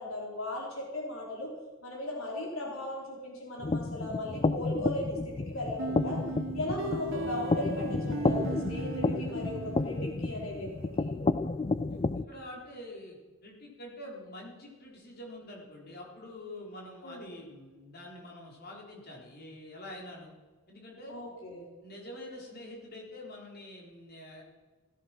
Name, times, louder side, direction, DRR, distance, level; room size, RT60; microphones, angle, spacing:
voice 1, 0.0-1.5 1.8-6.2 6.5-10.7 11.0-11.1 17.0-17.3 21.1-21.7, left 1 dB, 90° left, -2 dB, 4.5 m, -37 dB
sound 1, 3.6-12.2, left 3 dB, 30° left, 0.4 m, -31 dB
sound 2, 5.8-10.5, right 3 dB, 70° right, 1.1 m, -38 dB
voice 2, 12.3-20.3 20.7-21.1 21.8-24.4, left 1 dB, 50° left, -1 dB, 4.1 m, -46 dB
16.5 x 14.0 x 6.0 m, 1.3 s
head